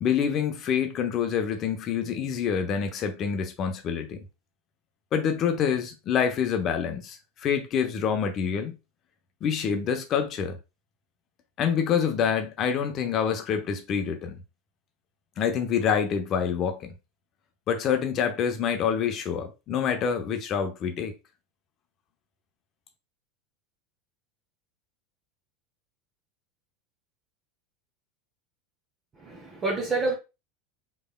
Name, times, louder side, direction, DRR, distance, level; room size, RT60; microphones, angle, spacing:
voice 1, 0.0-4.2 5.1-8.8 9.4-10.6 11.6-14.4 15.4-16.9 17.7-21.1, left 7 dB, 35° left, 0.8 m, -26 dB
voice 2, 29.1-30.2, right 3 dB, 25° right, 1.0 m, -28 dB
4.9 x 3.1 x 2.2 m
figure-of-eight pair, 80°, 0 cm